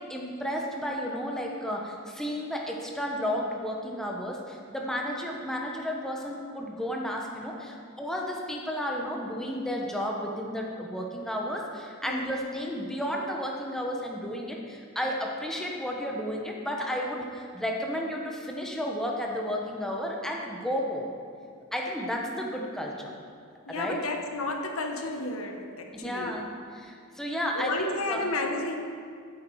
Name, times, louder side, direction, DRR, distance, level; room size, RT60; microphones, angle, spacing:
voice 1, 0.0-21.1 21.7-23.1 23.7-24.0 26.0-26.5 26.7-28.3, equal, ahead, -1 dB, 1.1 m, -32 dB
voice 2, 23.7-26.4 27.5-28.8, left 2 dB, 75° left, 3 dB, 1.3 m, -32 dB
14.5 x 8.4 x 4.8 m, 2.2 s
head